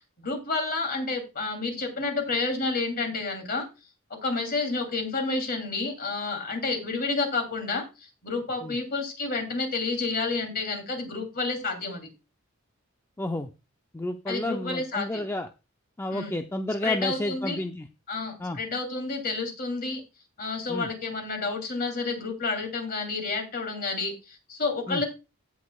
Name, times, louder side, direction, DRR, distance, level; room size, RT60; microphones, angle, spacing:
voice 1, 0.2-3.7 4.1-12.1 14.3-15.3 16.1-16.3 16.8-17.6 18.1-20.0 20.4-25.1, left 3 dB, 45° left, 3 dB, 2.8 m, -30 dB
voice 2, 13.2-13.5 13.9-15.5 16.0-17.9 18.4-18.6 20.7-20.9 24.9-25.0, left 1 dB, 10° left, 6 dB, 0.5 m, -31 dB
16.5 x 6.3 x 2.3 m, 0.27 s
head